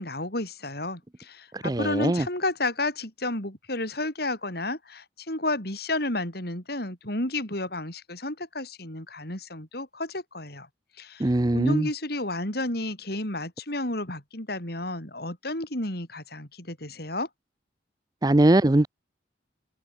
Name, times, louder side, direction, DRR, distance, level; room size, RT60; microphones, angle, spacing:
voice 1, 0.0-10.7 11.0-17.3, left 2 dB, 55° left, 7.1 m, -31 dB
voice 2, 1.5-2.3 11.2-11.9 18.2-18.9, right 1 dB, 20° right, 0.6 m, -21 dB
head